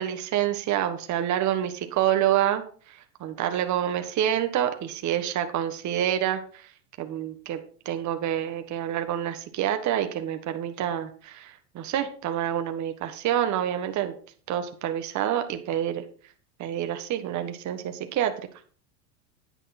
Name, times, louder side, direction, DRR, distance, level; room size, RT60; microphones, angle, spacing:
voice 1, 0.0-2.6 3.2-6.4 7.0-14.1 14.5-16.0 16.6-18.3, right 11 dB, 40° right, 7 dB, 1.4 m, -27 dB
9.7 x 9.5 x 4.2 m, 0.43 s
hypercardioid pair, 100°, 43 cm